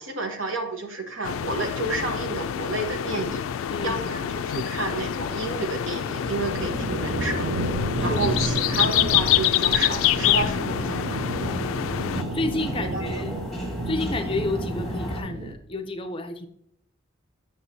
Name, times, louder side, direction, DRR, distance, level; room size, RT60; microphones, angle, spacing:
voice 1, 0.0-3.4 3.8-7.6 8.0-11.2 12.8-13.1, right 3 dB, 75° right, 4 dB, 1.1 m, -30 dB
sound 1, 1.2-12.2, left 11 dB, 80° left, 0.3 m, -26 dB
voice 2, 3.7-4.1 8.0-8.2 11.5-11.8 12.3-13.4 13.9-16.5, left 2 dB, 25° left, 8 dB, 0.5 m, -31 dB
sound 2, 4.0-15.5, right 2 dB, 50° right, 0.6 m, -32 dB
sound 3, 9.5-15.2, left 1 dB, ahead, 1.4 m, -35 dB
8.0 x 6.4 x 2.7 m, 0.69 s
head